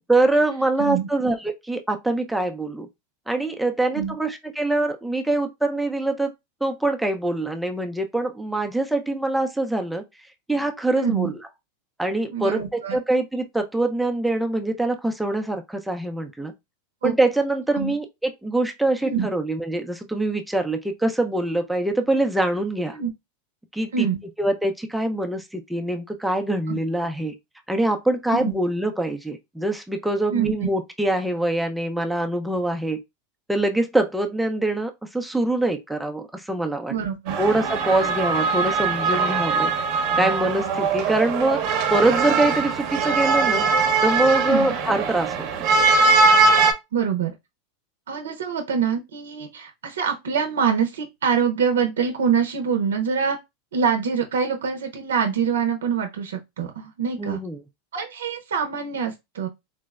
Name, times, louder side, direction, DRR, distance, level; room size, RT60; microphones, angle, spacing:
voice 1, 0.1-2.9 3.3-6.3 6.6-10.0 10.5-11.4 12.0-16.5 17.0-23.0 23.7-24.1 24.4-27.3 27.7-33.0 33.5-36.9 37.4-39.7 40.2-41.6 41.9-43.6 44.0-45.5 57.2-57.6, right 2 dB, 5° right, 0.5 m, -24 dB
voice 2, 10.9-11.3 12.3-13.0 17.0-17.1 17.7-17.9 19.0-19.3 22.9-23.1 23.9-24.2 26.7-26.8 28.3-28.5 30.3-30.7 36.9-37.4 44.4-44.7 46.9-47.3 48.1-53.4 53.7-57.4 57.9-59.5, right 6 dB, 85° right, 0.6 m, -25 dB
sound 1, 37.3-46.7, right 4 dB, 50° right, 0.7 m, -21 dB
4.0 x 2.0 x 2.3 m
hypercardioid pair, 115°, 0 cm